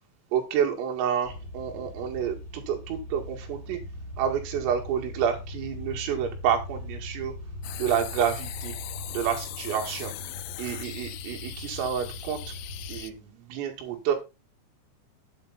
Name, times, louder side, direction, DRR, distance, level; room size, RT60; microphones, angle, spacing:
voice 1, 0.3-3.8 4.2-7.3 7.7-8.8 9.1-10.1 10.6-12.5 12.9-14.2, right 8 dB, 90° right, 2 dB, 4.9 m, -29 dB
sound 1, 1.2-13.0, left 1 dB, 30° left, 2.7 m, -40 dB
sound 2, 7.6-13.1, left 16 dB, 85° left, 3.4 m, -40 dB
9.8 x 8.6 x 4.1 m, 0.28 s
omnidirectional pair, 5.8 m